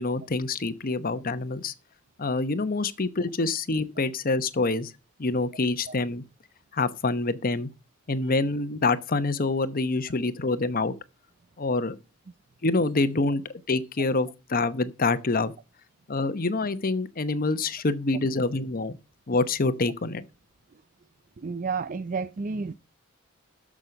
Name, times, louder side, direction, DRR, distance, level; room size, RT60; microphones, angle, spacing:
voice 1, 0.0-1.7 2.2-4.9 5.2-6.2 6.7-7.7 8.1-10.9 11.6-11.9 12.6-13.4 13.7-15.5 16.1-19.0 19.3-20.2, left 3 dB, 45° left, 0.9 m, -26 dB
voice 2, 21.4-22.7, right 4 dB, 40° right, 0.4 m, -31 dB
12.5 x 6.2 x 5.2 m
head